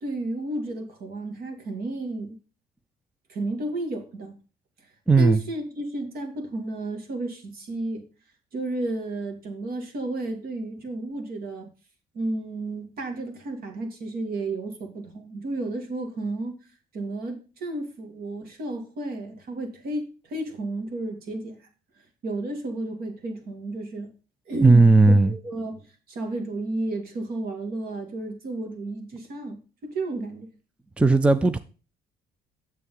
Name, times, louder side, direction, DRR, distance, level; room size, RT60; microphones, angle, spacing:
voice 1, 0.0-2.4 3.3-4.4 5.2-8.0 8.5-11.7 12.1-16.6 16.9-21.6 22.2-24.1 24.5-25.8 26.1-30.5, right 2 dB, 65° right, 2.4 m, -32 dB
voice 2, 5.1-5.4 24.6-25.4 31.0-31.6, right 3 dB, 5° right, 0.4 m, -16 dB
7.5 x 7.0 x 3.8 m
cardioid pair, 110°, 17 cm